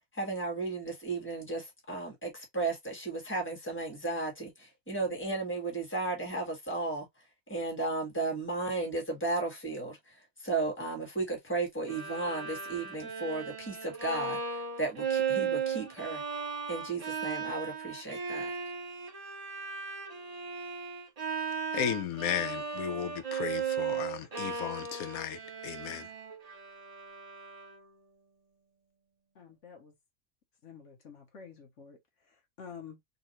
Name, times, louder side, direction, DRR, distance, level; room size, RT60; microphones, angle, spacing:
voice 1, 0.1-7.1 7.5-10.0 10.4-16.2 16.7-18.5, right 3 dB, 10° left, 1.5 m, -34 dB
Bowed string instrument, 11.9-28.0, right 6 dB, 35° right, 0.8 m, -36 dB
voice 2, 21.7-26.1, left 9 dB, 90° left, 1.1 m, -35 dB
voice 3, 29.4-29.9 30.6-32.0 32.6-33.0, left 6 dB, 60° left, 1.2 m, -48 dB
4.0 x 2.5 x 2.9 m
omnidirectional pair, 1.5 m